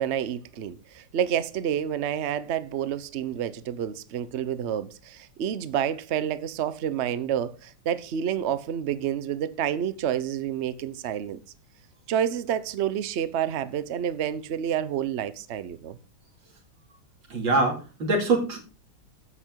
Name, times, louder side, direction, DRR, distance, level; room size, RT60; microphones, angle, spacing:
voice 1, 0.0-11.4 12.1-16.0, right 9 dB, 50° right, 0.8 m, -29 dB
voice 2, 17.3-18.6, right 2 dB, 90° right, 3.5 m, -24 dB
9.7 x 7.9 x 4.6 m
omnidirectional pair, 2.0 m